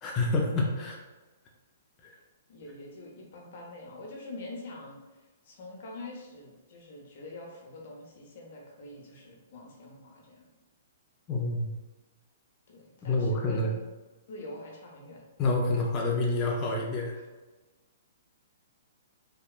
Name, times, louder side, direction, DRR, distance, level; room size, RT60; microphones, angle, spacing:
voice 1, 0.0-1.0 2.0-2.1 11.3-11.7 13.0-13.7 15.4-17.2, left 2 dB, 25° left, -2 dB, 0.4 m, -28 dB
voice 2, 2.5-10.5 12.7-13.9 14.3-15.3 17.2-17.3, left 2 dB, 55° left, -1 dB, 0.7 m, -45 dB
2.8 x 2.2 x 2.3 m, 1.2 s
hypercardioid pair, 135°, 0 cm